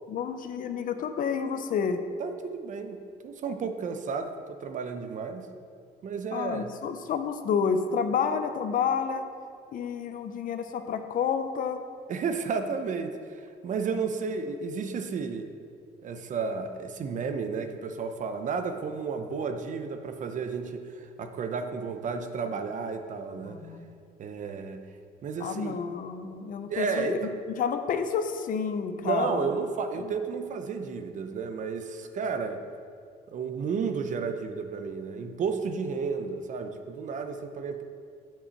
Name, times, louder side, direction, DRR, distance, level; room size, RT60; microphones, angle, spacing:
voice 1, 0.1-2.0 6.3-9.3 9.7-11.8 23.4-24.0 25.4-27.3 27.6-29.5 30.0-30.1, left 6 dB, 55° left, 8 dB, 0.7 m, -30 dB
voice 2, 2.2-5.5 6.0-6.7 12.1-15.5 16.0-23.6 24.2-24.8 25.2-25.8 26.7-27.3 29.0-32.6 33.3-37.8, right 5 dB, 50° right, 7 dB, 0.7 m, -32 dB
7.0 x 5.4 x 7.0 m, 2.3 s
cardioid pair, 110°, 17 cm